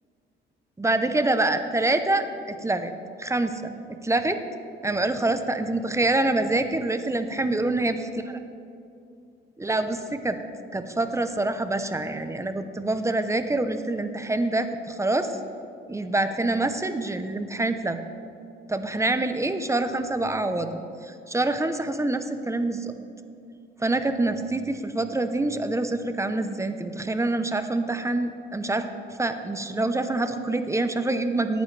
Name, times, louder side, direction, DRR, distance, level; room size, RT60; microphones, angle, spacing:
voice 1, 0.8-2.9 3.2-4.4 4.8-8.0 9.6-10.4 10.7-15.3 15.9-18.0 18.7-22.9 23.8-28.8 29.2-31.6, right 2 dB, 15° right, 9 dB, 0.7 m, -26 dB
18.0 x 9.3 x 3.3 m, 2.5 s
cardioid pair, 90°, 20 cm